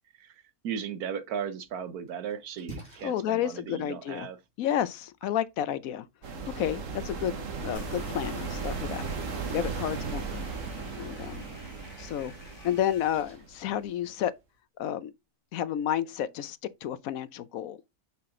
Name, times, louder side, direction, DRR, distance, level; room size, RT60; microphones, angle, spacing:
voice 1, 0.2-4.4 9.8-9.9, right 7 dB, 90° right, 1.4 m, -36 dB
Splash splatter, 1.6-14.6, right 3 dB, 45° right, 3.1 m, -54 dB
voice 2, 3.0-4.3 4.6-6.1 6.6-9.0 9.5-10.4 11.0-11.4 12.0-12.3 12.6-14.3 14.8-15.1 15.5-17.8, left 10 dB, 75° left, 1.0 m, -31 dB
sound 1, 6.2-13.9, right 4 dB, 60° right, 1.4 m, -36 dB
sound 2, 7.7-13.2, left 1 dB, 35° left, 2.5 m, -50 dB
5.8 x 5.8 x 3.7 m
omnidirectional pair, 1.5 m